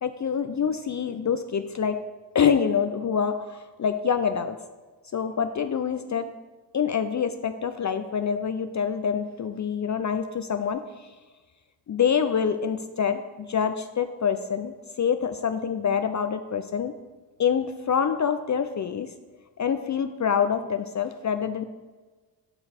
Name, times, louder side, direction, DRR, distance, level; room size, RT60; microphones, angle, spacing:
voice 1, 0.0-2.0 2.3-4.6 5.1-6.3 6.7-11.1 11.9-16.9 17.4-19.1 19.6-21.6, left 7 dB, 40° left, 9 dB, 0.5 m, -26 dB
6.9 x 5.7 x 4.3 m, 1.3 s
supercardioid pair, 45°, 48 cm